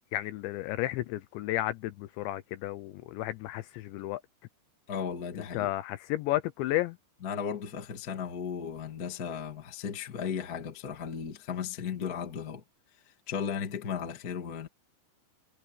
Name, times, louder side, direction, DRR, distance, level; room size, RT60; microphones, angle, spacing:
voice 1, 0.1-4.2 5.3-7.0, left 15 dB, 80° left, 2.8 m, -32 dB
voice 2, 4.9-5.7 7.2-12.6 13.3-14.7, left 7 dB, 60° left, 0.9 m, -35 dB
omnidirectional pair, 5.8 m